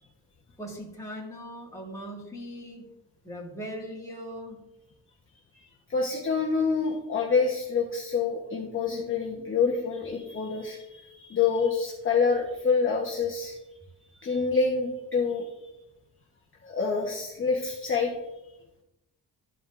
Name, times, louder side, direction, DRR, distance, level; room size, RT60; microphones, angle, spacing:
voice 1, 0.6-2.9 3.2-4.6, equal, 10° left, -4 dB, 1.9 m, -39 dB
voice 2, 5.9-13.5 14.2-15.5 16.6-18.1, left 5 dB, 35° left, -3 dB, 1.0 m, -27 dB
13.5 x 5.2 x 2.5 m, 0.92 s
wide cardioid pair, 170°, 38 cm